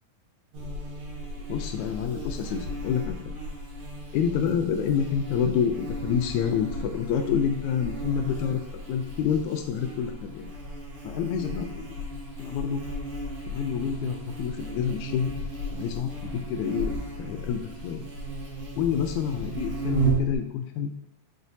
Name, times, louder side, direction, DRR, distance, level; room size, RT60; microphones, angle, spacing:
Buzz, 0.5-20.3, right 1 dB, 75° right, 3.2 m, -35 dB
voice 1, 1.5-3.2 4.1-8.6 8.9-10.5 11.0-12.0 12.4-12.8 13.5-15.3 15.7-16.9 17.2-18.0 18.8-20.9, left 7 dB, 85° left, 5 dB, 2.0 m, -28 dB
7.0 x 6.2 x 2.7 m, 0.82 s
omnidirectional pair, 3.4 m